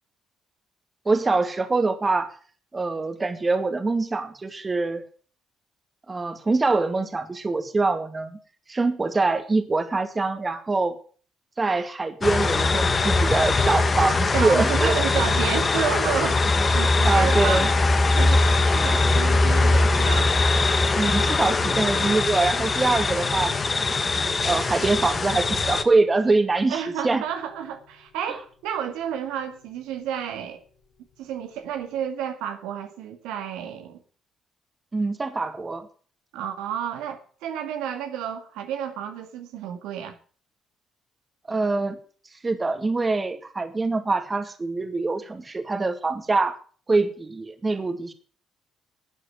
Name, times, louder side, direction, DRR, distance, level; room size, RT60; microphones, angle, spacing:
voice 1, 1.1-2.3 2.7-5.0 6.1-8.4 8.7-11.0 11.6-14.9 17.0-17.7 21.0-23.9 24.4-27.2 34.9-35.9 41.5-42.0 42.4-46.6 46.9-48.1, right 3 dB, 30° right, 8 dB, 2.3 m, -24 dB
sound 1, 12.2-25.8, left 3 dB, 40° left, 1.8 m, -21 dB
voice 2, 14.3-16.4 16.7-17.7 18.1-20.4 26.7-30.6 31.2-34.0 36.3-40.2, right 9 dB, 85° right, 5 dB, 2.0 m, -31 dB
sound 2, 17.3-32.0, left 3 dB, 60° left, 3.8 m, -41 dB
12.5 x 8.3 x 9.1 m, 0.44 s
supercardioid pair, 65°, 0 cm